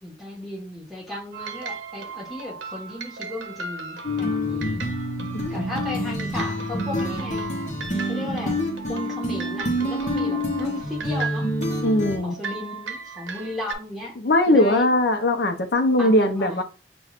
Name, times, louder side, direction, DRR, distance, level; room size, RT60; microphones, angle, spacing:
voice 1, 0.0-4.8 5.5-7.5 8.1-11.5 12.2-14.1 14.5-14.9 16.0-16.6, left 1 dB, ahead, 1.2 m, -35 dB
sound 1, 1.3-13.7, right 5 dB, 90° right, 0.6 m, -37 dB
sound 2, 4.0-12.2, left 1 dB, 40° left, 0.9 m, -27 dB
voice 2, 11.8-12.4 14.2-16.6, left 1 dB, 60° left, 0.6 m, -20 dB
6.4 x 2.3 x 2.4 m
head